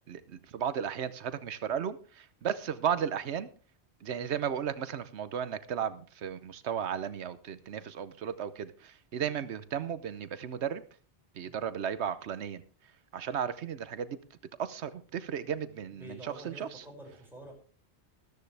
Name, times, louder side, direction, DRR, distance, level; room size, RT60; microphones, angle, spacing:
voice 1, 0.1-3.5 4.0-10.8 11.3-12.6 13.1-14.2 14.6-16.7, right 8 dB, 80° right, 14 dB, 1.1 m, -34 dB
voice 2, 15.9-17.5, right 1 dB, ahead, -2 dB, 5.9 m, -48 dB
13.5 x 13.5 x 3.3 m, 0.40 s
omnidirectional pair, 1.1 m